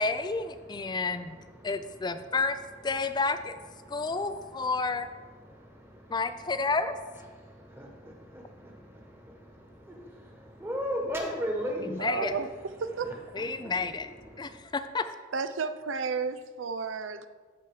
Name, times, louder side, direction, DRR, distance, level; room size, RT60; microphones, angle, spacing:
voice 1, 0.0-1.4 1.6-3.5 3.9-5.1 6.1-7.0 11.8-12.3 13.3-14.1 14.4-15.0, left 3 dB, 20° left, 11 dB, 0.4 m, -30 dB
voice 2, 0.5-2.4 2.9-3.0 3.7-6.7 7.3-12.4 13.0-14.6, equal, 10° right, 0 dB, 1.4 m, -39 dB
voice 3, 12.0-12.5 12.8-13.2 15.3-17.3, right 5 dB, 75° right, 11 dB, 0.5 m, -32 dB
13.5 x 4.6 x 4.8 m, 1.5 s
head